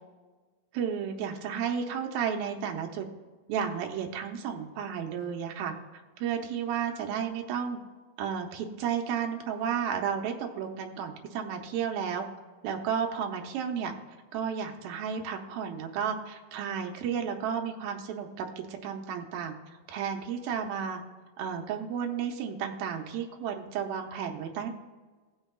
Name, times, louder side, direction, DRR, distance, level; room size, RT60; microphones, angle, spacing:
voice 1, 0.7-3.1 3.5-5.7 6.2-7.8 8.2-12.3 12.6-13.9 14.3-19.5 19.9-21.0 21.4-24.7, right 7 dB, 90° right, 3 dB, 2.7 m, -32 dB
18.5 x 6.3 x 2.3 m, 1.4 s
omnidirectional pair, 4.1 m